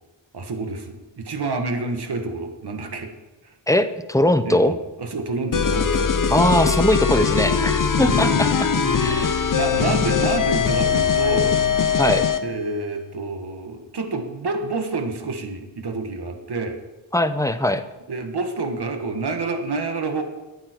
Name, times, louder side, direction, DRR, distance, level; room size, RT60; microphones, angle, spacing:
voice 1, 0.3-3.1 3.4-3.5 4.4-6.1 8.0-8.5 8.9-9.1 9.5-11.6 12.4-16.8 18.1-20.2, right 3 dB, 55° right, 5 dB, 1.6 m, -28 dB
voice 2, 3.7-4.7 6.3-8.7 9.0-9.5 12.0-12.3 17.1-17.8, left 1 dB, 5° left, 10 dB, 0.7 m, -20 dB
sound 1, 5.5-12.4, left 6 dB, 45° left, 0.8 m, -21 dB
13.0 x 9.0 x 4.5 m, 1.2 s
cardioid pair, 65°, 46 cm